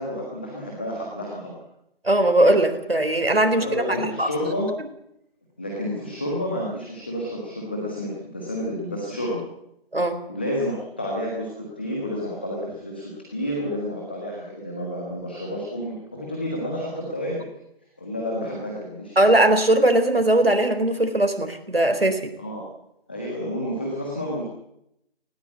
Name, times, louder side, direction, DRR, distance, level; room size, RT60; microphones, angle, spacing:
voice 1, 0.0-1.5 3.5-4.7 5.6-9.4 10.3-17.5 18.0-19.2 22.4-22.7 23.1-24.4, equal, 10° left, -2 dB, 1.5 m, -30 dB
voice 2, 2.0-3.7 4.0-4.3 9.9-10.2 19.2-22.3, right 1 dB, 70° right, 8 dB, 4.1 m, -19 dB
19.5 x 18.0 x 8.4 m, 0.80 s
figure-of-eight pair, 170°, 31 cm